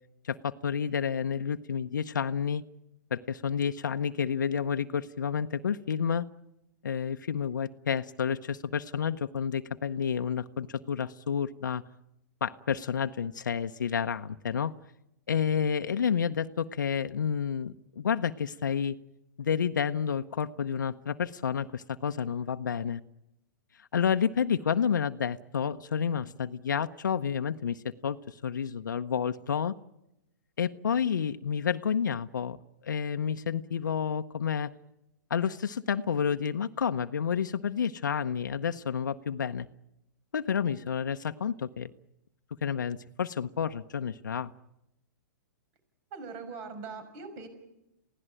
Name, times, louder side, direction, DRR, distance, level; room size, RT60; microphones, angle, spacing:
voice 1, 0.2-2.6 3.1-6.2 6.8-11.8 12.4-14.7 15.3-19.0 19.4-23.0 23.8-29.7 30.6-32.6 32.8-34.7 35.3-39.7 40.3-41.9 42.6-44.5, left 7 dB, 85° left, 8 dB, 0.8 m, -30 dB
voice 2, 46.1-47.5, right 4 dB, 45° right, 9 dB, 5.8 m, -41 dB
28.0 x 17.0 x 9.0 m, 0.88 s
hypercardioid pair, 125°, 10 cm